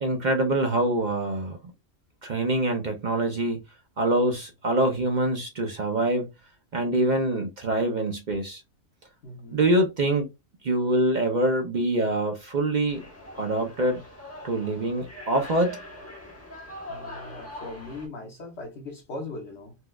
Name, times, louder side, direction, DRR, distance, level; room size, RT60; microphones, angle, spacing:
voice 1, 0.0-1.6 2.2-3.6 4.0-6.3 6.7-8.6 9.5-10.3 10.6-13.0 13.4-14.0 14.4-15.8, right 1 dB, 55° right, 0.5 m, -25 dB
voice 2, 9.2-9.6 16.8-19.8, left 2 dB, 60° left, 1.1 m, -39 dB
sound 1, 12.9-18.1, left 1 dB, 15° left, 0.9 m, -42 dB
4.3 x 2.2 x 2.3 m
omnidirectional pair, 1.4 m